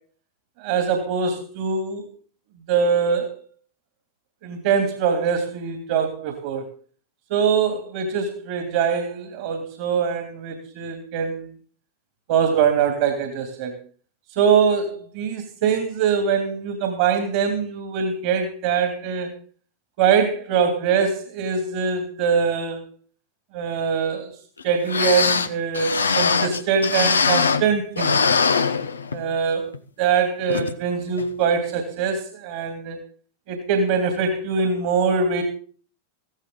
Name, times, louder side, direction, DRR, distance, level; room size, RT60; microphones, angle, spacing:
voice 1, 0.6-2.1 2.7-3.3 4.4-6.7 7.3-11.5 12.3-13.7 14.4-19.3 20.0-22.8 23.5-24.3 24.6-28.2 29.1-29.7 30.0-33.0 33.5-35.4, right 6 dB, 50° right, 6 dB, 2.7 m, -23 dB
sound 1, 24.6-24.7 24.9-27.7 28.0-29.3 29.7-29.8 30.5-30.7 31.2-31.3, left 5 dB, 75° left, 1.0 m, -21 dB
15.5 x 14.5 x 4.0 m, 0.41 s
figure-of-eight pair, 90°, 0 cm